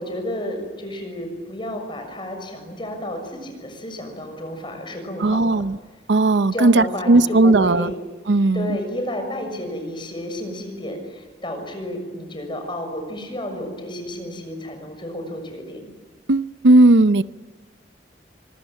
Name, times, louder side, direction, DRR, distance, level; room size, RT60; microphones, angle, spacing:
voice 1, 0.0-5.6 6.5-8.0 8.5-15.8, left 1 dB, 25° left, 5 dB, 6.6 m, -31 dB
voice 2, 5.2-5.8 6.1-7.9 8.3-8.8 16.3-17.2, right 2 dB, 80° right, 14 dB, 0.7 m, -16 dB
25.0 x 21.5 x 8.9 m, 1.4 s
head